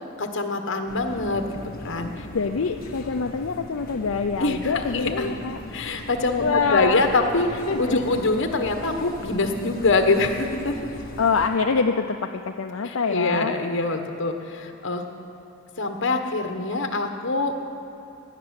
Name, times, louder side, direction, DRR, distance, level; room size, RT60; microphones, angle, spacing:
voice 1, 0.2-1.4 1.8-2.3 4.4-5.3 5.7-10.7 12.8-15.0 15.8-17.5, left 3 dB, 65° left, 5 dB, 1.3 m, -24 dB
sound 1, 0.9-11.5, left 1 dB, 45° left, 1.4 m, -39 dB
voice 2, 2.3-5.6 6.4-7.1 7.7-8.2 8.8-9.0 11.2-13.6, left 5 dB, 80° left, 4 dB, 0.6 m, -25 dB
17.0 x 6.8 x 9.8 m, 3.0 s
head